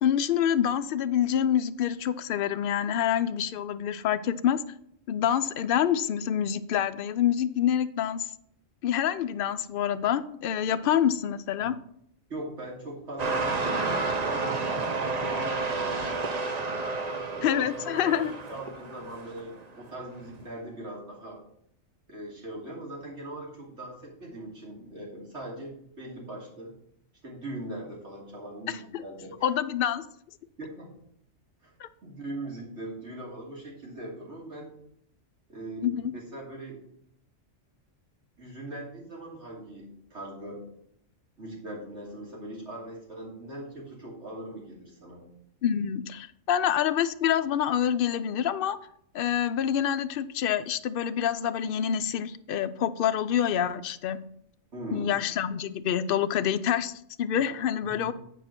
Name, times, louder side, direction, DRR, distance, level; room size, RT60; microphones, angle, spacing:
voice 1, 0.0-4.6 5.1-8.3 8.8-11.8 17.4-18.3 28.7-29.0 29.4-30.0 31.8-31.9 35.8-36.1 45.6-48.8 49.1-54.2 54.9-58.1, left 9 dB, 60° left, 11 dB, 0.6 m, -27 dB
voice 2, 12.3-16.4 17.0-21.4 22.1-26.7 27.2-29.5 30.6-30.9 31.6-31.7 32.0-34.7 35.5-36.8 38.4-40.6 41.4-45.2 54.7-55.1 57.8-58.1, right 1 dB, 60° right, -3 dB, 3.1 m, -40 dB
sound 1, 13.2-19.6 20.3-20.4, right 3 dB, 35° right, 0.8 m, -30 dB
9.3 x 4.9 x 5.8 m, 0.70 s
omnidirectional pair, 1.4 m